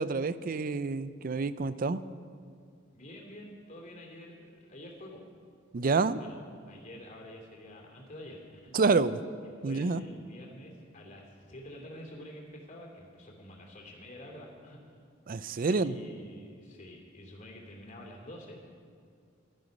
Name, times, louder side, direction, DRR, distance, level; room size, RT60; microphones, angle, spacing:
voice 1, 0.0-2.0 5.7-6.2 8.7-9.2 9.6-10.0 15.3-16.0, right 4 dB, 45° right, 15 dB, 0.5 m, -28 dB
voice 2, 2.9-5.2 5.9-6.4 6.7-8.7 9.6-14.8 15.7-18.6, left 1 dB, 40° left, 0 dB, 2.7 m, -48 dB
16.0 x 13.0 x 5.3 m, 2.3 s
head